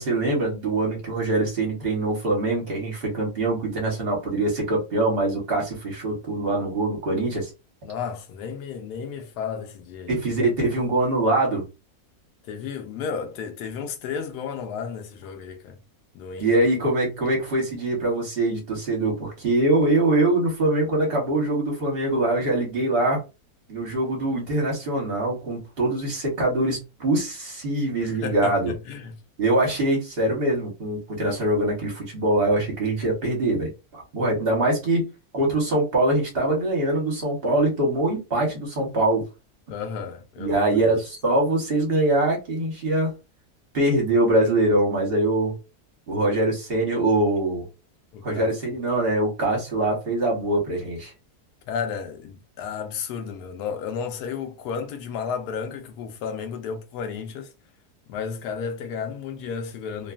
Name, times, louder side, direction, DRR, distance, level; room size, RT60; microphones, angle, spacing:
voice 1, 0.0-7.5 10.1-11.7 16.4-23.2 23.7-28.7 29.4-35.1 35.3-39.2 40.4-43.1 43.7-45.5 46.1-47.6 48.2-51.1, right 2 dB, 40° right, 1.1 m, -23 dB
voice 2, 7.8-10.2 12.5-15.8 16.1-16.5 28.0-29.1 39.7-41.0 48.1-48.5 51.7-57.5 58.1-60.1, left 6 dB, 85° left, 1.1 m, -33 dB
2.9 x 2.3 x 2.3 m
omnidirectional pair, 1.7 m